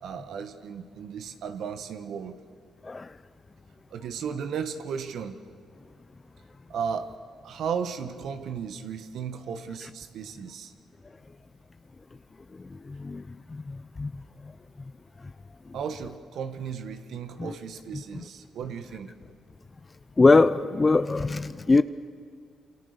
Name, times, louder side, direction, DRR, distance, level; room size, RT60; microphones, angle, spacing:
voice 1, 0.0-2.4 3.9-5.4 6.7-7.2 7.4-10.7 15.7-19.1, right 7 dB, 70° right, 9 dB, 1.6 m, -35 dB
voice 2, 12.9-13.2 14.0-14.1 17.4-17.5 18.1-18.2 20.2-21.8, left 3 dB, 25° left, 13 dB, 0.7 m, -21 dB
27.5 x 26.0 x 6.8 m, 2.3 s
cardioid pair, 90°, 0 cm